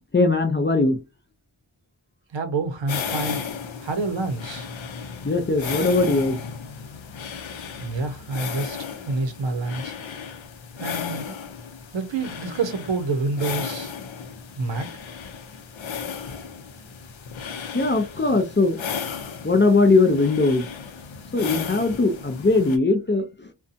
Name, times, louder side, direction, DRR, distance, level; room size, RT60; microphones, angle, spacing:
voice 1, 0.1-1.0 5.2-6.4 17.7-19.0 19.4-20.7 21.3-23.5, left 3 dB, 25° left, 0.5 m, -20 dB
voice 2, 2.3-3.4 3.8-4.7 7.8-9.9 10.8-11.4 11.9-13.9 14.6-14.9, right 3 dB, 65° right, 0.7 m, -28 dB
sound 1, 2.9-22.8, left 6 dB, 70° left, 0.6 m, -35 dB
2.6 x 2.2 x 2.5 m
wide cardioid pair, 60°, 48 cm